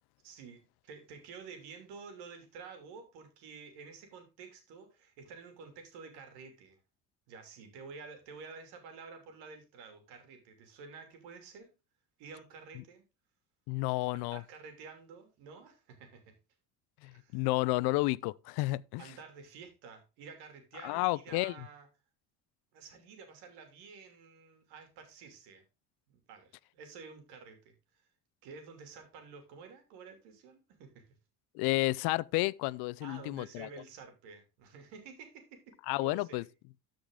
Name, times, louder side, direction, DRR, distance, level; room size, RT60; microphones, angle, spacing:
voice 1, 0.2-6.8 7.3-11.7 12.2-13.0 14.1-16.3 17.1-17.5 19.0-21.9 22.7-25.6 26.1-27.7 28.4-31.0 33.0-36.5, right 5 dB, 85° right, 2.9 m, -50 dB
voice 2, 13.7-14.4 17.0-19.0 20.8-21.5 31.5-33.7 35.9-36.4, left 21 dB, 80° left, 0.5 m, -31 dB
13.0 x 5.2 x 3.8 m
cardioid pair, 95°, 38 cm